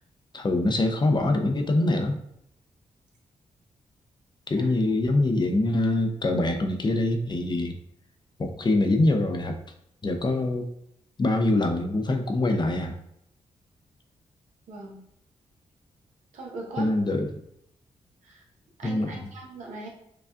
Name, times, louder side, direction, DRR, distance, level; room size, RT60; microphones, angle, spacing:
voice 1, 0.3-2.2 4.5-7.8 8.4-9.6 10.0-10.7 11.2-12.9 16.8-17.3 18.8-19.3, left 2 dB, 35° left, 5 dB, 0.6 m, -24 dB
voice 2, 14.7-15.0 16.3-16.9 18.2-18.4 18.8-19.9, right 2 dB, 80° right, -1 dB, 0.9 m, -39 dB
4.7 x 2.4 x 2.5 m, 0.74 s
cardioid pair, 55°, 13 cm